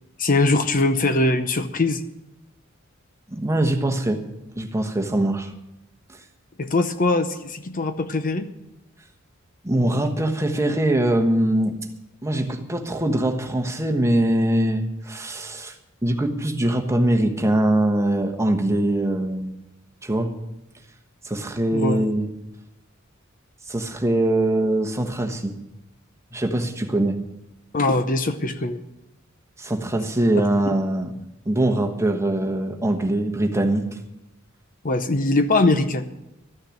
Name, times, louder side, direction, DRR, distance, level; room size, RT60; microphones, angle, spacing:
voice 1, 0.2-2.0 6.6-8.5 21.7-22.0 27.7-28.8 34.8-36.0, left 2 dB, 40° left, 9 dB, 0.7 m, -21 dB
voice 2, 3.3-4.2 4.6-5.5 9.6-11.7 12.2-15.7 16.0-19.5 20.0-20.3 21.2-22.3 23.7-25.6 26.3-27.2 29.6-31.1 31.5-33.9, right 1 dB, 15° right, 4 dB, 1.2 m, -22 dB
13.0 x 6.5 x 10.0 m, 0.90 s
head